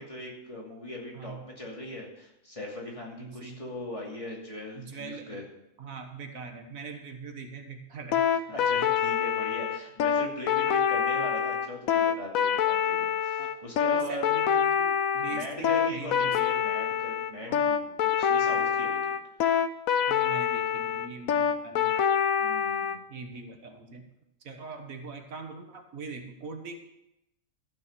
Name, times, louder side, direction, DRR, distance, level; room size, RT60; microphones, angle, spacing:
voice 1, 0.0-5.4 8.5-14.3 15.3-19.1 19.4-19.5 22.4-23.0, left 1 dB, 25° left, -3 dB, 2.7 m, -40 dB
voice 2, 3.2-3.6 4.7-5.4 5.8-8.3 13.4-13.5 13.9-16.6 17.5-17.7 20.1-21.9 23.1-24.1 24.4-26.8, right 4 dB, 75° right, 5 dB, 1.7 m, -42 dB
sound 1, 8.1-23.0, left 8 dB, 80° left, 1.2 m, -26 dB
14.0 x 6.4 x 6.8 m, 0.86 s
omnidirectional pair, 1.4 m